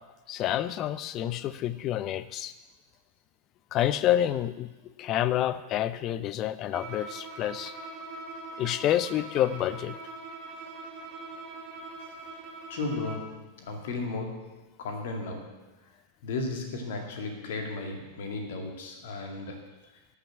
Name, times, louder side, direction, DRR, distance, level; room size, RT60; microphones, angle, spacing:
voice 1, 0.3-2.5 3.7-4.7 5.0-7.7 8.6-9.9, left 12 dB, 35° left, 15 dB, 0.6 m, -28 dB
Bowed string instrument, 6.7-13.4, right 3 dB, 40° right, 2.5 m, -42 dB
voice 2, 12.7-15.7 16.2-19.7, left 3 dB, 55° left, 4 dB, 2.1 m, -35 dB
12.5 x 6.2 x 8.8 m, 1.1 s
figure-of-eight pair, 90°, 0 cm